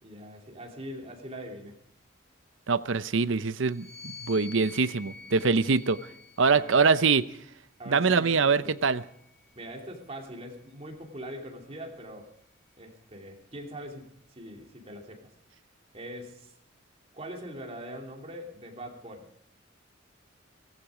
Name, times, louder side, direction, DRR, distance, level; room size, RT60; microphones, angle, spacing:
voice 1, 0.0-1.8 6.4-6.8 7.8-8.7 9.5-12.3 12.8-15.3 15.9-16.5 17.1-19.3, equal, 30° right, 1 dB, 2.9 m, -42 dB
voice 2, 2.7-6.0 6.4-7.2 7.9-9.0, right 4 dB, 70° right, 15 dB, 0.7 m, -24 dB
sound 1, 3.6-7.2 8.1-9.7, left 5 dB, 5° left, 2.4 m, -49 dB
17.5 x 15.5 x 5.0 m, 0.72 s
head